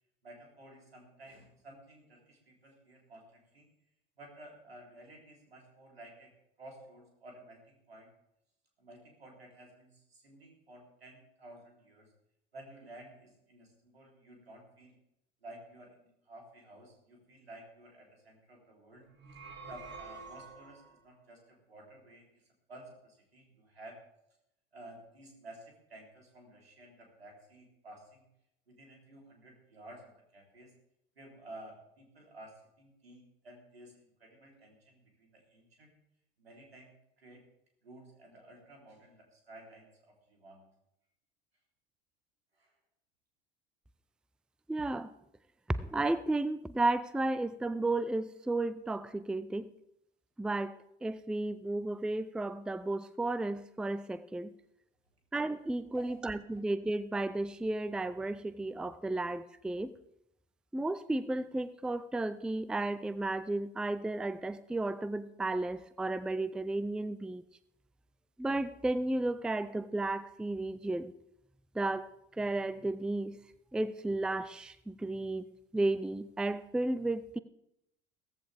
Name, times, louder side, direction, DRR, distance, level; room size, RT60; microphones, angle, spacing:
voice 1, 0.2-3.7 4.2-6.3 6.6-8.1 8.8-12.1 12.5-15.0 15.4-19.1 19.7-22.4 22.7-24.0 24.7-28.2 28.7-30.8 31.2-35.9 36.4-37.5 37.8-40.6 42.5-42.7 55.9-56.6, right 1 dB, 85° right, 3.6 m, -53 dB
sound 1, 19.1-21.0, right 4 dB, 35° right, 2.6 m, -48 dB
voice 2, 44.7-45.1 45.8-49.7 50.4-54.5 55.3-59.9 60.7-67.4 68.4-71.1 71.7-73.4 73.7-75.4 75.7-77.4, right 2 dB, 5° right, 0.5 m, -33 dB
16.5 x 14.5 x 3.5 m
figure-of-eight pair, 70°, 30 cm